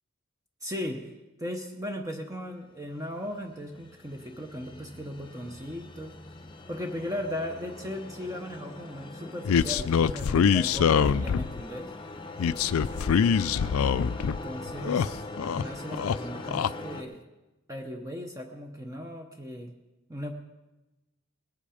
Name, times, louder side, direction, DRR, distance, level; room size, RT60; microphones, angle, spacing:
voice 1, 0.6-1.0 1.4-6.2 6.7-11.9 14.2-15.1 15.5-17.2 17.7-19.7 20.1-20.3, equal, 15° right, 3 dB, 0.9 m, -37 dB
sound 1, 2.9-17.0, left 2 dB, 20° left, 0.8 m, -42 dB
sound 2, 9.4-11.6 12.4-14.4 14.7-15.6 15.9-16.7, left 7 dB, 80° left, 0.4 m, -24 dB
19.5 x 8.5 x 5.0 m, 1.1 s
head